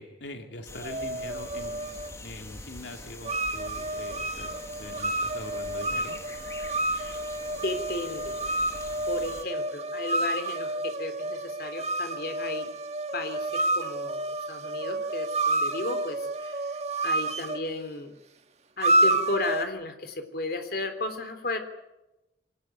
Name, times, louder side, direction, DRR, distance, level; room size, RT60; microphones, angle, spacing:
voice 1, 0.0-6.2, left 2 dB, 90° left, 4 dB, 2.5 m, -43 dB
sound 1, 0.7-9.4, left 2 dB, 15° left, 1.5 m, -44 dB
sound 2, 0.8-2.1 3.2-17.7 18.8-19.6, right 1 dB, 40° right, 1.6 m, -29 dB
voice 2, 6.9-7.2 7.6-8.3 9.1-12.7 13.1-16.7 17.0-18.1 18.8-21.6, left 2 dB, 60° left, 7 dB, 3.4 m, -34 dB
24.5 x 19.0 x 9.2 m, 0.95 s
head